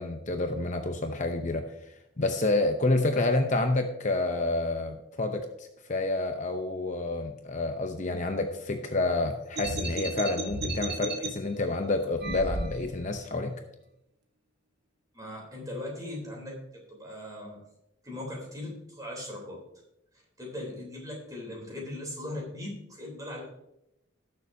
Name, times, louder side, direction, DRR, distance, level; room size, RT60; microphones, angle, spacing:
voice 1, 0.0-1.7 2.2-13.5, left 2 dB, 35° left, 6 dB, 0.7 m, -29 dB
sound 1, 9.6-11.3 12.2-13.1, right 2 dB, 55° right, 1.2 m, -33 dB
voice 2, 15.1-17.6 18.0-19.6 20.4-23.4, left 1 dB, 20° right, -2 dB, 3.4 m, -39 dB
18.5 x 6.7 x 2.7 m, 0.83 s
head